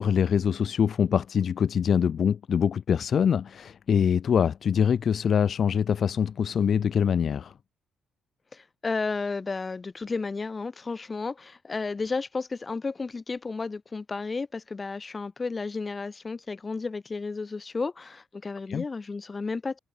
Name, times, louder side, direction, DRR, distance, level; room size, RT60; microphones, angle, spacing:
voice 1, 0.0-7.5 18.7-18.8, left 7 dB, 55° left, 1.3 m, -24 dB
voice 2, 8.5-19.8, left 4 dB, 30° left, 2.8 m, -32 dB
cardioid pair, 90°, 0 cm